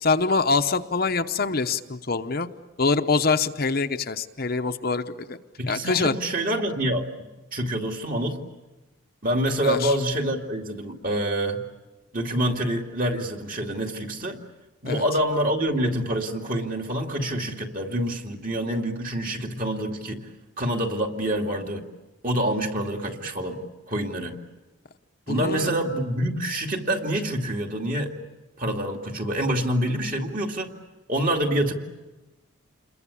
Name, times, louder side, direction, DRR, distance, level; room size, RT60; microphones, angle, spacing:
voice 1, 0.0-2.5 2.8-5.4 5.7-6.1 9.6-9.9 14.8-15.0 25.3-25.7, left 4 dB, 45° left, 7 dB, 0.8 m, -24 dB
voice 2, 5.6-7.1 7.5-8.4 9.2-11.6 12.1-14.4 14.8-20.3 20.6-21.9 22.2-23.6 23.9-24.4 25.3-28.1 28.6-30.7 31.1-31.7, right 1 dB, 40° right, 2 dB, 2.5 m, -26 dB
28.5 x 22.0 x 8.4 m, 1.1 s
head